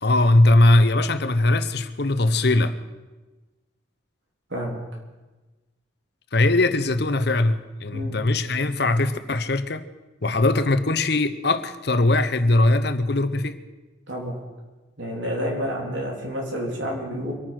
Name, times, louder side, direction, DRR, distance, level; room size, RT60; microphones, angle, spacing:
voice 1, 0.0-2.8 6.3-9.9 10.2-13.6, left 2 dB, 55° left, 11 dB, 0.8 m, -20 dB
voice 2, 4.5-4.8 7.9-8.2 14.1-14.4 15.0-17.3, equal, 70° right, -1 dB, 3.7 m, -29 dB
24.5 x 9.5 x 5.9 m, 1.2 s
head